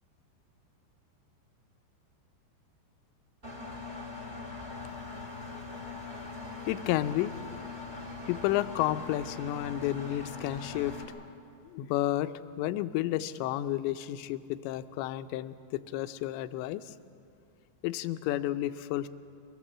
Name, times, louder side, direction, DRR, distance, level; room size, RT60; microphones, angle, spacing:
Engine, 3.4-11.0, left 3 dB, 15° right, 2.1 m, -41 dB
voice 1, 6.7-7.4 8.2-11.0 11.6-12.3 12.6-16.9 17.8-19.1, left 14 dB, 90° left, 12 dB, 2.9 m, -31 dB
24.5 x 18.5 x 7.4 m, 2.4 s
omnidirectional pair, 5.0 m